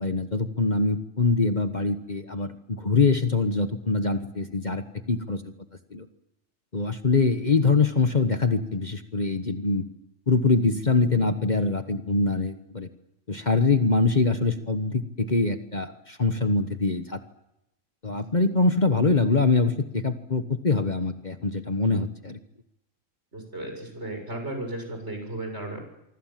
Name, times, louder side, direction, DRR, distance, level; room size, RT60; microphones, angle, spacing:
voice 1, 0.0-5.5 5.9-6.0 6.7-9.8 10.3-12.9 13.3-17.2 18.0-22.4, left 3 dB, 35° left, 8 dB, 1.4 m, -24 dB
voice 2, 23.3-25.8, right 1 dB, 60° right, 4 dB, 7.3 m, -35 dB
25.5 x 25.0 x 7.6 m, 0.89 s
omnidirectional pair, 1.3 m